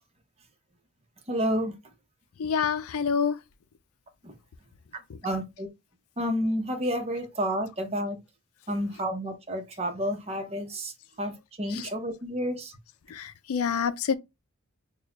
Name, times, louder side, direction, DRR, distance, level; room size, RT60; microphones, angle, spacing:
voice 1, 1.3-1.7 4.2-4.3 5.2-5.7 6.2-8.2 8.7-12.7, equal, 30° right, 0.9 m, -30 dB
voice 2, 2.4-3.4 11.7-11.9 13.1-14.1, left 6 dB, 90° left, 0.4 m, -27 dB
6.1 x 2.4 x 2.4 m
head